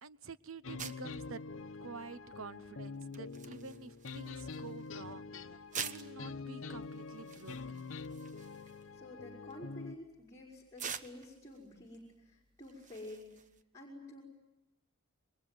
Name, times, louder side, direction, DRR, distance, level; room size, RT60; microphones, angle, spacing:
voice 1, 0.0-1.4 1.8-5.5 5.8-7.9, right 4 dB, 85° right, 15 dB, 1.0 m, -49 dB
sound 1, 0.6-10.0, left 4 dB, 75° left, 1.0 m, -45 dB
sound 2, 0.8-13.6, right 7 dB, 40° right, 1.2 m, -49 dB
voice 2, 8.6-13.4 13.7-14.2, left 1 dB, 15° left, -3 dB, 5.6 m, -50 dB
29.0 x 22.5 x 9.2 m, 1.0 s
head